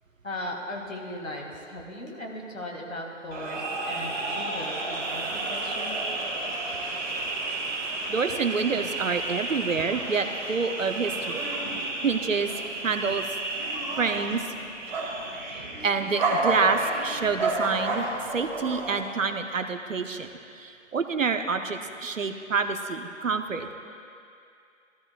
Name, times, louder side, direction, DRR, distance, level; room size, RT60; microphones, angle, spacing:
voice 1, 0.2-6.0, left 1 dB, 80° left, -1 dB, 2.3 m, -38 dB
sound 1, 3.3-19.0, right 2 dB, 35° right, 1.9 m, -31 dB
voice 2, 8.1-11.4 11.7-12.5 12.8-13.3 14.0-14.5 15.5-18.1 18.3-20.3 20.5-23.7, right 5 dB, 75° right, 7 dB, 0.8 m, -27 dB
16.0 x 13.5 x 2.4 m, 2.4 s
figure-of-eight pair, 145°, 39 cm